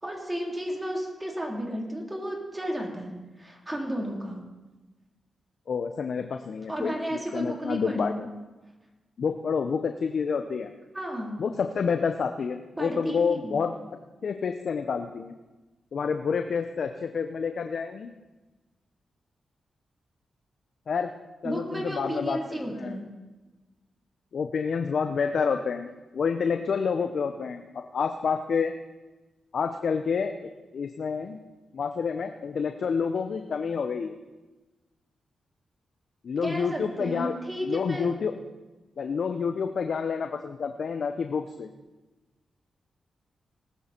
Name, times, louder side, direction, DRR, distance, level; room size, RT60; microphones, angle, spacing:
voice 1, 0.0-4.4 6.7-8.2 10.9-11.4 12.8-13.6 21.4-23.1 36.4-38.1, equal, 20° right, -1 dB, 3.6 m, -33 dB
voice 2, 5.7-8.3 9.2-10.7 11.4-13.8 14.2-15.3 15.9-18.1 20.9-21.1 21.4-23.0 24.3-27.6 27.9-28.7 29.5-31.4 31.7-34.1 36.2-37.3 37.6-38.3 39.0-41.7, left 6 dB, 70° left, 7 dB, 0.7 m, -29 dB
19.0 x 8.4 x 4.5 m, 1.1 s
supercardioid pair, 45°, 0 cm